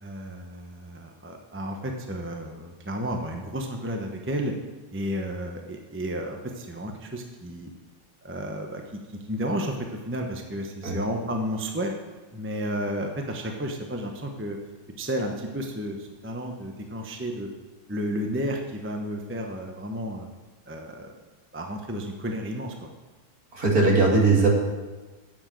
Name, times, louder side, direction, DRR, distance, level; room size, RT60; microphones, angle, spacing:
voice 1, 0.0-4.5 4.9-7.7 8.2-11.9 12.3-14.6 15.0-17.5 17.9-20.3 20.7-21.1 21.5-22.9, equal, 10° right, 2 dB, 0.6 m, -32 dB
voice 2, 23.5-24.5, right 3 dB, 50° right, -2 dB, 2.7 m, -19 dB
9.7 x 7.5 x 7.6 m, 1.3 s
omnidirectional pair, 2.1 m